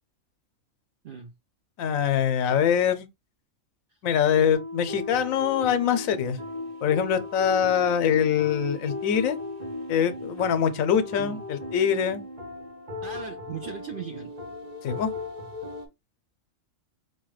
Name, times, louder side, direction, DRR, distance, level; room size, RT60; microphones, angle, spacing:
voice 1, 1.8-3.1 4.0-6.4 6.8-9.4 9.9-12.2 14.8-15.1, left 8 dB, 80° left, 1.0 m, -24 dB
sound 1, 4.5-15.9, left 2 dB, 35° right, 0.9 m, -36 dB
voice 2, 13.0-14.3, right 7 dB, 65° right, 0.5 m, -38 dB
4.8 x 2.2 x 3.1 m
omnidirectional pair, 1.4 m